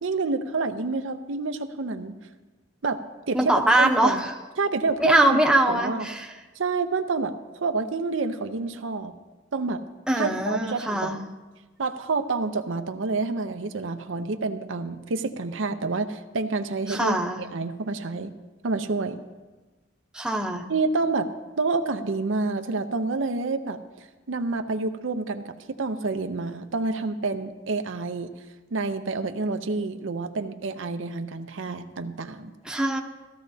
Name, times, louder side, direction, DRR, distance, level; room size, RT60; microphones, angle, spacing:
voice 1, 0.0-2.1 2.8-4.2 4.6-6.1 6.6-9.1 9.5-9.8 10.2-11.2 11.8-18.3 18.6-19.2 20.7-21.3 21.6-23.8 24.3-28.3 28.7-32.5, right 3 dB, 85° right, 7 dB, 0.7 m, -28 dB
voice 2, 3.3-4.3 5.0-6.3 10.1-11.2 16.9-17.4 20.1-20.7 32.6-33.0, right 1 dB, 5° right, 1 dB, 0.8 m, -22 dB
15.5 x 13.5 x 2.7 m, 1.2 s
head